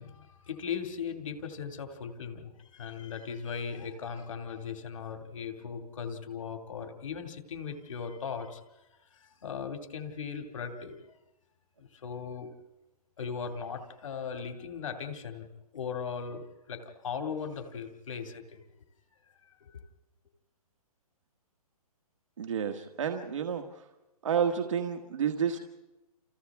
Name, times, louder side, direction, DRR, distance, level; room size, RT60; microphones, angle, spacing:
voice 1, 0.0-8.7 9.2-11.2 11.8-12.5 13.2-15.5 15.7-18.6 19.6-19.8, left 6 dB, 55° left, 6 dB, 2.4 m, -38 dB
voice 2, 22.4-23.6 24.2-25.6, right 7 dB, 55° right, 5 dB, 1.6 m, -30 dB
29.0 x 29.0 x 3.6 m, 1.0 s
hypercardioid pair, 175°, 19 cm